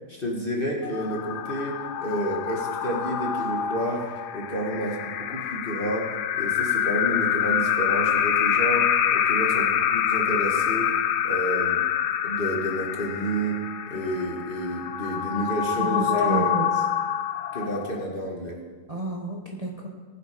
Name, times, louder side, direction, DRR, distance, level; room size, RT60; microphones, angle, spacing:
voice 1, 0.1-6.1 6.3-10.9 11.2-11.8 12.2-13.6 13.9-16.5 17.5-18.6, right 1 dB, 35° left, -1 dB, 2.0 m, -30 dB
sound 1, 0.8-18.2, left 9 dB, 80° left, 1.2 m, -26 dB
voice 2, 15.8-16.7 18.9-19.9, equal, 25° right, -2 dB, 1.5 m, -29 dB
19.0 x 7.8 x 5.2 m, 1.4 s
omnidirectional pair, 1.7 m